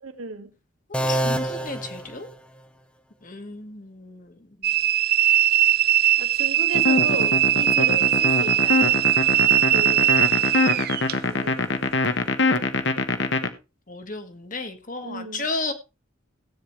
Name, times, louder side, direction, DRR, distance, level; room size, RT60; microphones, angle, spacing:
voice 1, 0.0-0.5 6.2-9.0 9.7-10.1 11.2-11.6 15.0-15.5, right 3 dB, 85° right, 2.1 m, -34 dB
sound 1, 0.9-2.8, right 1 dB, 5° left, 0.9 m, -27 dB
voice 2, 1.1-2.3 3.2-4.3 13.9-15.7, left 3 dB, 40° left, 1.7 m, -33 dB
sound 2, 4.6-11.1, right 12 dB, 45° right, 0.6 m, -20 dB
sound 3, 6.7-13.5, left 2 dB, 55° left, 1.3 m, -23 dB
17.0 x 8.7 x 3.3 m
head